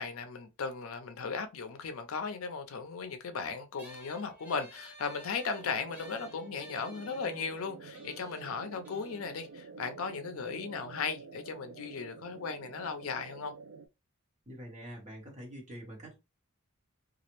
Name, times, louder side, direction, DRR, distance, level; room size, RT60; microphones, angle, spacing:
voice 1, 0.0-13.5, left 5 dB, 75° left, 0.5 m, -37 dB
sound 1, 3.8-10.6, right 1 dB, 10° right, 0.8 m, -55 dB
sound 2, 5.6-13.9, right 4 dB, 65° right, 0.3 m, -49 dB
voice 2, 14.5-16.2, equal, 35° right, 1.0 m, -45 dB
2.4 x 2.0 x 2.9 m
head